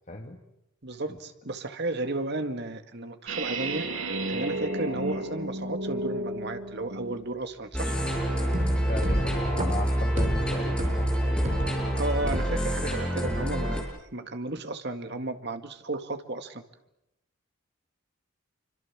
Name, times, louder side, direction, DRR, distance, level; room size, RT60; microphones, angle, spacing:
voice 1, 0.1-0.4 8.9-11.2, left 1 dB, 35° left, 3 dB, 1.9 m, -36 dB
voice 2, 0.8-3.9 4.3-8.0 12.0-13.9 14.1-16.6, right 2 dB, 50° right, 8 dB, 1.9 m, -33 dB
sound 1, 3.3-7.3, right 2 dB, 70° right, 7.4 m, -32 dB
sound 2, 7.7-13.8, equal, 5° left, 7.2 m, -27 dB
sound 3, 8.1-12.8 13.2-13.8, equal, 35° right, 3.3 m, -34 dB
27.5 x 25.0 x 7.4 m, 0.86 s
head